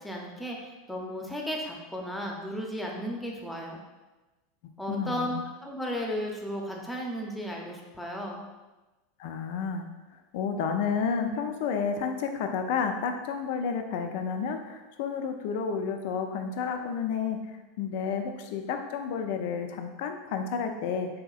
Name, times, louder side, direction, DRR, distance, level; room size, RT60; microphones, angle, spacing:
voice 1, 0.0-3.8 4.8-8.4, equal, 5° left, -1 dB, 0.6 m, -34 dB
voice 2, 4.9-5.4 9.2-9.9 10.3-21.1, left 6 dB, 65° left, 5 dB, 0.3 m, -31 dB
3.3 x 2.8 x 2.3 m, 1.1 s
hypercardioid pair, 100°, 0 cm